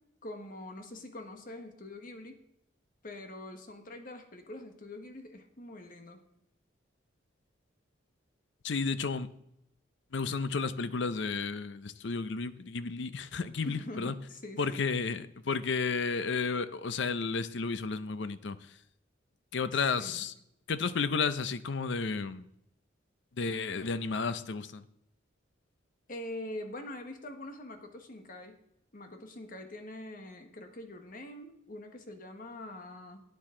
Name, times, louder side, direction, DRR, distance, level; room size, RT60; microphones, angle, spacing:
voice 1, 0.2-2.4 3.0-6.2 13.6-14.8 19.7-20.3 26.1-28.6 28.9-33.2, left 1 dB, 45° left, 6 dB, 1.3 m, -44 dB
voice 2, 8.6-9.3 10.1-14.1 14.6-18.8 19.5-20.3 20.7-22.5 23.4-24.8, left 4 dB, 65° left, 14 dB, 0.6 m, -32 dB
11.5 x 9.2 x 3.8 m, 0.77 s
head